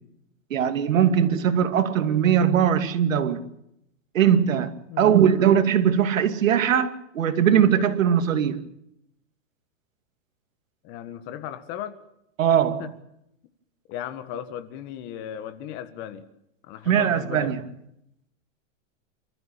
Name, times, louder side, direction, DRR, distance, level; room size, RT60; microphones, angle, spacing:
voice 1, 0.5-3.5 4.1-8.6 12.4-12.9 16.9-17.6, right 8 dB, 90° right, 2.7 m, -20 dB
voice 2, 4.9-5.2 10.8-12.0 12.8-12.9 13.9-16.2 16.6-17.6, left 10 dB, 30° left, 1.7 m, -36 dB
28.5 x 14.0 x 9.0 m
supercardioid pair, 165°, 38 cm